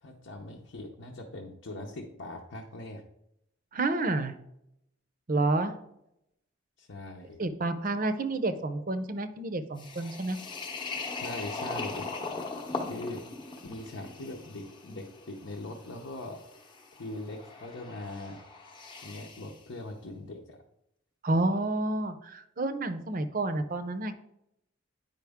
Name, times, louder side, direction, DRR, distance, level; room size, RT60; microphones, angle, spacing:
voice 1, 0.0-3.0 6.8-7.4 11.1-12.1 12.9-13.3 13.6-16.4 16.9-18.4 19.0-20.6, left 2 dB, 70° left, 0 dB, 0.8 m, -41 dB
voice 2, 3.7-4.3 5.3-5.8 7.4-10.4 21.2-24.2, right 2 dB, 40° right, 10 dB, 0.6 m, -29 dB
sound 1, 9.8-19.6, left 3 dB, 25° left, 0.8 m, -40 dB
9.1 x 5.2 x 3.5 m, 0.80 s
head